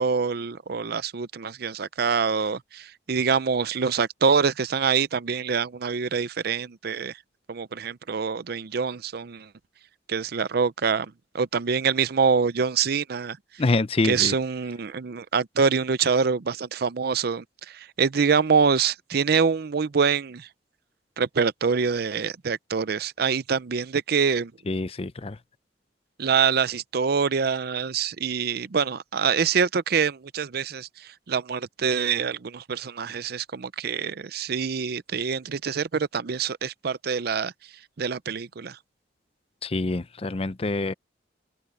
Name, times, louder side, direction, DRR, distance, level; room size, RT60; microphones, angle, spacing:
voice 1, 0.0-7.1 7.5-9.5 10.1-11.1 11.3-13.4 14.0-20.5 21.2-24.5 26.2-30.9 31.3-37.5 38.0-38.8, right 6 dB, 60° right, 0.6 m, -25 dB
voice 2, 13.6-14.4 24.7-25.4 39.6-40.9, left 2 dB, 35° left, 0.6 m, -26 dB
open air
head